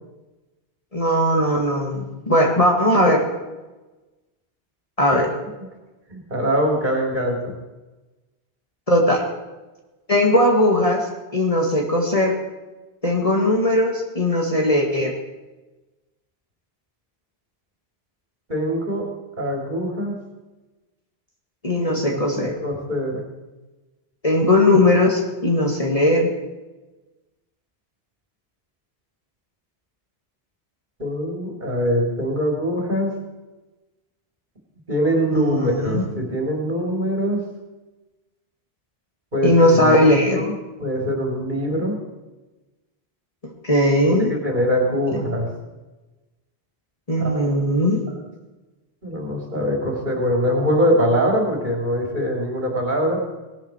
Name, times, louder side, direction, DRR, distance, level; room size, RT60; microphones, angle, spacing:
voice 1, 0.9-3.2 5.0-5.3 8.9-9.2 10.1-11.1 11.3-12.4 13.0-15.1 21.6-22.5 24.2-26.3 35.3-36.1 39.4-40.4 43.4-44.3 45.1-45.2 47.1-48.0, left 1 dB, 35° left, 0 dB, 2.3 m, -18 dB
voice 2, 6.1-7.5 18.5-19.0 19.4-20.1 21.8-22.2 22.6-23.2 31.0-33.1 34.9-37.4 39.3-40.1 40.4-40.5 40.8-41.9 44.2-45.5 47.2-47.4 49.0-53.2, equal, 50° right, 0 dB, 3.5 m, -23 dB
18.5 x 12.5 x 4.6 m, 1.1 s
omnidirectional pair, 1.1 m